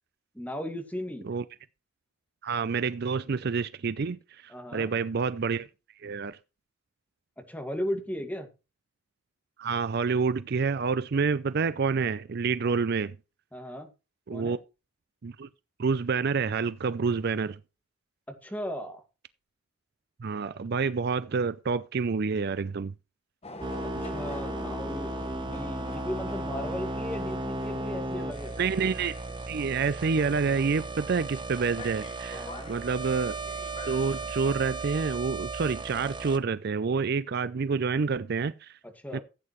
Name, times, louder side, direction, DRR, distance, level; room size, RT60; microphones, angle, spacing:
voice 1, 0.3-1.3 4.5-4.9 7.5-8.5 12.6-12.8 13.5-13.9 14.3-14.6 18.3-19.0 24.0-28.5 32.3-32.7 39.0-39.2, equal, 10° left, 2.0 m, -36 dB
voice 2, 2.4-5.7 6.0-6.4 9.6-13.2 14.3-14.6 15.2-15.5 15.8-17.6 20.2-22.9 28.6-29.2 29.5-33.4 33.9-38.8 39.1-39.2, right 5 dB, 50° right, 0.4 m, -28 dB
sound 1, 23.4-34.3, left 2 dB, 30° left, 1.4 m, -46 dB
sound 2, 23.6-36.4, right 2 dB, 25° right, 0.8 m, -35 dB
15.0 x 8.7 x 3.1 m
head